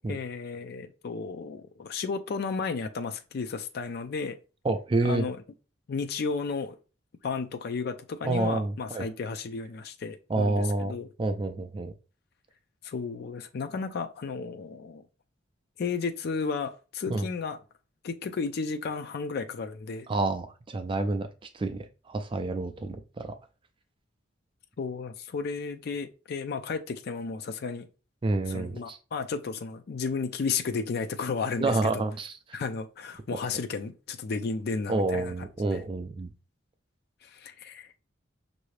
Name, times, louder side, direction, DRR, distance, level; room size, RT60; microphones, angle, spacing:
voice 1, 0.1-4.4 5.0-5.4 5.9-6.8 7.2-11.1 12.8-15.0 15.8-17.6 18.0-20.1 24.8-27.9 28.5-32.0 32.5-35.3 35.7-35.8 37.2-37.9, left 4 dB, 55° left, 0.4 m, -33 dB
voice 2, 4.6-5.2 8.2-9.1 10.3-10.9 11.2-11.9 17.1-17.3 20.1-21.3 21.5-23.3 28.2-29.0 31.6-32.3 34.9-36.3, right 2 dB, 25° right, 0.3 m, -28 dB
5.7 x 2.6 x 3.2 m
head